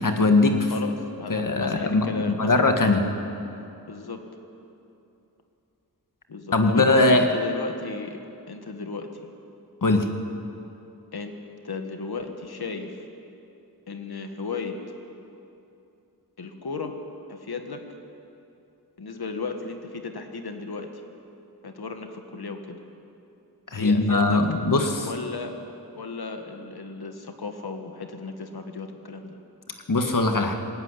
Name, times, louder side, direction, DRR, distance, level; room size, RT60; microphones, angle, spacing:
voice 1, 0.0-0.7 1.3-2.1 2.4-3.0 6.5-7.3 9.8-10.1 23.7-25.1 29.9-30.5, left 2 dB, 60° left, 5 dB, 2.0 m, -20 dB
voice 2, 0.7-3.2 3.9-4.2 6.3-8.2 8.5-9.2 11.1-11.3 11.6-13.0 13.9-14.7 16.4-16.9 17.3-17.8 19.0-21.0 21.6-22.8 23.8-24.4 25.0-25.5 26.0-29.4, left 4 dB, 90° left, 5 dB, 1.9 m, -35 dB
20.5 x 17.0 x 9.9 m, 2.8 s
wide cardioid pair, 90°, 37 cm